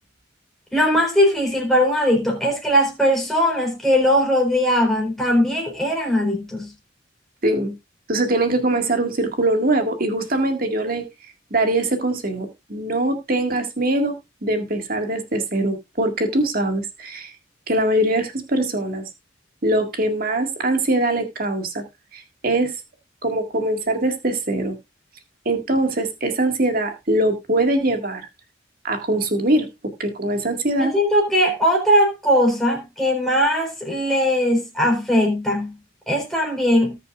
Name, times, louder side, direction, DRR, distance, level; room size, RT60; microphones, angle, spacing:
voice 1, 0.7-6.7 30.8-35.7 36.1-37.0, equal, ahead, 4.2 m, -19 dB
voice 2, 7.4-7.7 8.1-11.0 11.5-14.2 14.4-17.3 17.7-19.0 19.6-21.8 22.1-22.7 23.2-24.8 25.5-28.2 28.8-29.7 30.0-30.9, right 1 dB, 45° right, 1.9 m, -22 dB
19.0 x 6.8 x 2.4 m
head